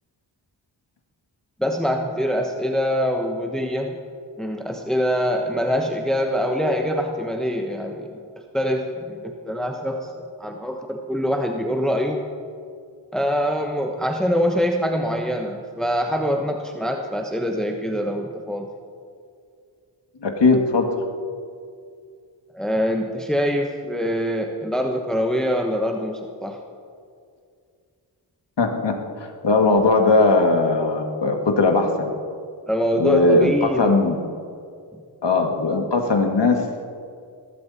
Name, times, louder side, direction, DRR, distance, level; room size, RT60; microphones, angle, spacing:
voice 1, 1.6-4.0 4.4-8.1 8.5-10.1 10.4-12.2 13.1-18.7 22.5-26.6 32.7-33.9, equal, ahead, 3 dB, 1.1 m, -24 dB
voice 2, 20.2-20.9 28.6-32.1 33.0-34.2 35.2-36.8, left 3 dB, 70° left, 3 dB, 2.1 m, -19 dB
21.5 x 13.0 x 4.3 m, 2.3 s
wide cardioid pair, 65°, 44 cm